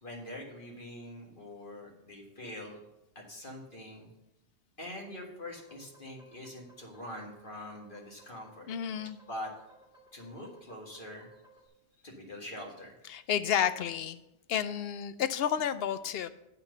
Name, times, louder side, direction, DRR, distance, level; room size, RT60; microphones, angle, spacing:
voice 1, 0.0-2.8 3.2-4.1 4.8-8.7 9.3-9.5 10.1-11.3 12.0-12.9, left 1 dB, 45° left, 0 dB, 1.9 m, -44 dB
sound 1, 5.4-11.7, right 2 dB, 5° right, 1.8 m, -61 dB
voice 2, 8.7-9.2 13.1-14.2 14.5-16.3, left 9 dB, 65° left, 13 dB, 0.7 m, -31 dB
8.5 x 5.8 x 6.7 m, 0.88 s
omnidirectional pair, 1.2 m